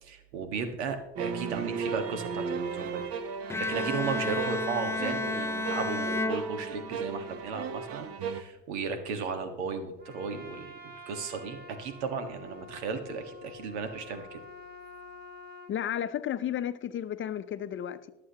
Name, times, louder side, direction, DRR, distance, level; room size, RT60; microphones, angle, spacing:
voice 1, 0.0-3.0 3.6-14.4, right 5 dB, 80° right, 7 dB, 1.6 m, -35 dB
sound 1, 1.2-8.4, right 5 dB, 45° right, 1.1 m, -36 dB
Bowed string instrument, 3.5-7.2, left 2 dB, 10° left, 0.3 m, -32 dB
Trumpet, 10.0-15.8, left 2 dB, 30° right, 2.3 m, -48 dB
voice 2, 15.7-18.1, left 10 dB, 35° left, 13 dB, 0.7 m, -33 dB
21.0 x 7.7 x 2.9 m, 0.96 s
hypercardioid pair, 85°, 33 cm